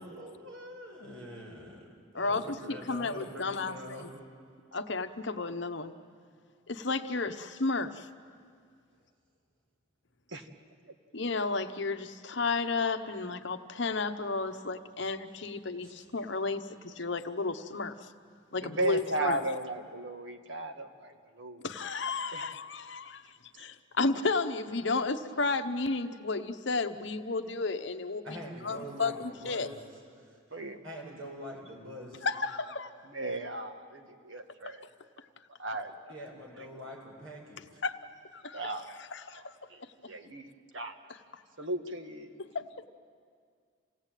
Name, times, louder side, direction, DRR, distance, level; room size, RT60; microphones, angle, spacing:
voice 1, 0.0-1.9 2.1-4.1 15.8-16.0 28.2-29.7 30.2-30.4 30.8-32.3 36.1-37.8, equal, 85° right, 0 dB, 6.5 m, -44 dB
voice 2, 2.7-4.1 4.7-5.9 6.7-8.1 11.1-17.9 18.5-19.4 21.6-23.2 23.6-28.2 28.6-29.7 32.2-32.9 34.7-34.8 37.8-38.0 38.3-38.6 39.1-39.5 42.5-42.7, left 3 dB, 60° left, 8 dB, 1.0 m, -32 dB
voice 3, 18.6-21.7 22.3-22.4 23.5-23.7 30.5-30.8 33.0-34.9 35.6-35.9 38.5-39.4 39.7-41.0 41.6-42.4, right 2 dB, 65° right, 6 dB, 1.7 m, -36 dB
28.0 x 17.0 x 9.1 m, 2.1 s
head